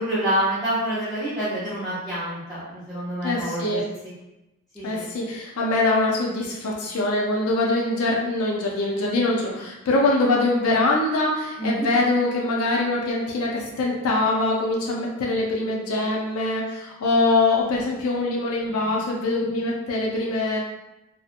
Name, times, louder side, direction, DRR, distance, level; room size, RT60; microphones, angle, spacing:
voice 1, 0.0-3.8 4.7-5.0 11.6-11.9 19.4-19.6, right 1 dB, ahead, -14 dB, 0.6 m, -27 dB
voice 2, 3.2-3.8 4.8-20.6, left 2 dB, 80° left, -2 dB, 0.5 m, -23 dB
2.7 x 2.1 x 2.4 m, 0.96 s
head